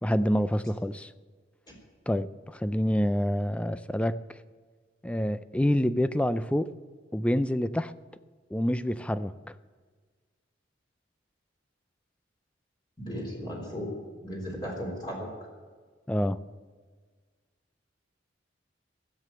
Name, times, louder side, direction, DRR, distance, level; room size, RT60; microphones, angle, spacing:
voice 1, 0.0-1.1 2.1-4.2 5.0-6.7 7.1-7.9 8.5-9.3 16.1-16.4, equal, 5° left, 14 dB, 0.4 m, -27 dB
voice 2, 13.0-13.9 14.2-15.3, equal, 25° left, -3 dB, 3.5 m, -35 dB
16.5 x 7.6 x 8.4 m, 1.5 s
head